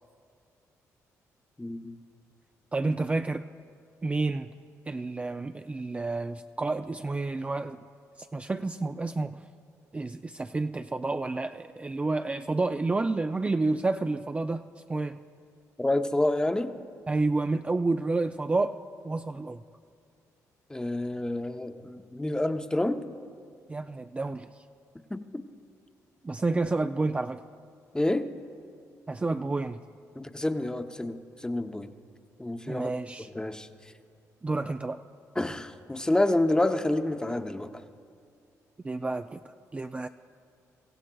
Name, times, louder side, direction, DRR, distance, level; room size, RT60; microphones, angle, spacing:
voice 1, 1.6-2.0 15.8-16.7 20.7-23.0 25.1-25.4 27.9-28.3 30.2-31.9 32.4-32.9 33.3-33.7 35.4-37.7, left 1 dB, 10° left, 8 dB, 0.7 m, -28 dB
voice 2, 2.7-3.4 4.0-4.5 4.9-7.8 8.2-9.4 9.9-14.6 14.9-15.2 17.1-18.8 19.0-19.6 23.7-24.5 26.2-27.4 29.1-29.8 32.7-33.3 34.4-35.0 38.8-39.4 39.7-40.1, right 3 dB, 20° right, 7 dB, 0.3 m, -29 dB
24.5 x 15.5 x 2.3 m, 2.3 s
cardioid pair, 70°, 6 cm